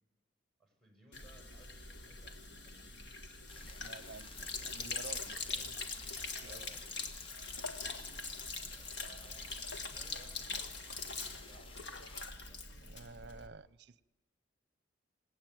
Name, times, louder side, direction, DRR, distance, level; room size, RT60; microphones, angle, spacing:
voice 1, 0.6-3.2 3.5-4.9 6.4-7.2 8.7-12.0 12.4-13.0, right 2 dB, ahead, 5.9 m, -64 dB
Sink (filling or washing), 1.1-13.5, left 4 dB, 65° left, 1.9 m, -43 dB
sound 1, 3.5-12.3, left 4 dB, 30° left, 0.8 m, -55 dB
voice 2, 3.6-5.8 6.4-6.6 12.7-14.0, right 3 dB, 60° right, 0.7 m, -51 dB
27.5 x 18.0 x 9.4 m
head